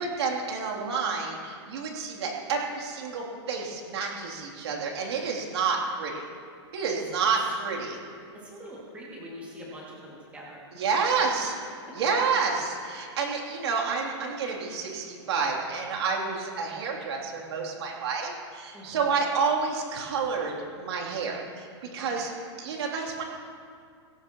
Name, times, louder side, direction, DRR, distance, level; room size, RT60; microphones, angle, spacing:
voice 1, 0.0-6.2 6.7-8.0 10.7-11.5 11.9-21.7 21.9-22.3 22.6-23.2, right 5 dB, 65° right, -2 dB, 3.3 m, -29 dB
voice 2, 8.3-10.7 11.9-12.0 18.7-19.2 22.0-22.3, equal, 10° right, -5 dB, 2.6 m, -44 dB
18.5 x 16.5 x 3.1 m, 2.3 s
supercardioid pair, 175°, 15 cm